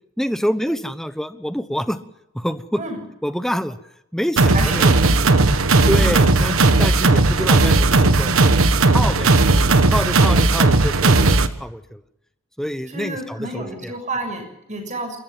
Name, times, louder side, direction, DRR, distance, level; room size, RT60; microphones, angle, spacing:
voice 1, 0.2-2.0 2.3-2.8 3.2-3.8 4.1-4.9 5.9-8.6 8.9-9.3 9.9-12.0 12.6-13.9, equal, ahead, 11 dB, 1.1 m, -26 dB
sound 1, 4.4-11.5, right 3 dB, 85° right, 1.4 m, -15 dB
voice 2, 4.5-5.5 6.0-6.2 12.9-15.2, right 1 dB, 35° right, 5 dB, 6.8 m, -30 dB
29.5 x 14.0 x 7.5 m, 0.83 s
head